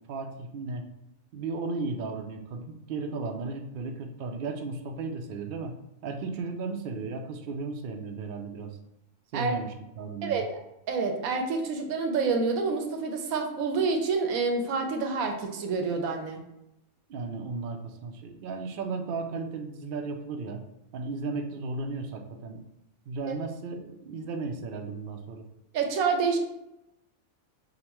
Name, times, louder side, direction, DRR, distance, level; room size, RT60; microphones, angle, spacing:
voice 1, 0.1-0.9 1.3-5.7 6.0-8.7 9.3-10.4 17.1-20.6 20.9-22.6 23.1-25.4, right 3 dB, 65° right, 3 dB, 0.5 m, -35 dB
voice 2, 10.2-16.4 23.3-23.4 25.7-26.4, right 4 dB, 85° right, 4 dB, 1.1 m, -28 dB
5.2 x 2.1 x 2.9 m, 0.87 s
omnidirectional pair, 1.4 m